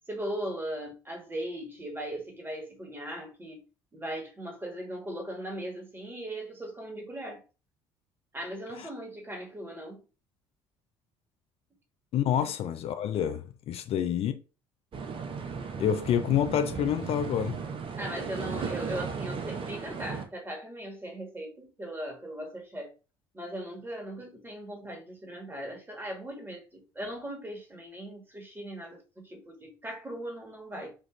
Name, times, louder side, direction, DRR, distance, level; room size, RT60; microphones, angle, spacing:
voice 1, 0.1-3.6 3.9-7.4 8.3-10.0 12.4-12.5 18.0-22.9 23.3-30.9, right 1 dB, 15° right, 1.5 m, -38 dB
voice 2, 12.1-14.3 15.8-17.6, left 9 dB, 50° left, 0.4 m, -28 dB
sound 1, 14.9-20.2, right 5 dB, 45° right, 0.7 m, -36 dB
4.5 x 2.4 x 3.1 m
hypercardioid pair, 60°, 13 cm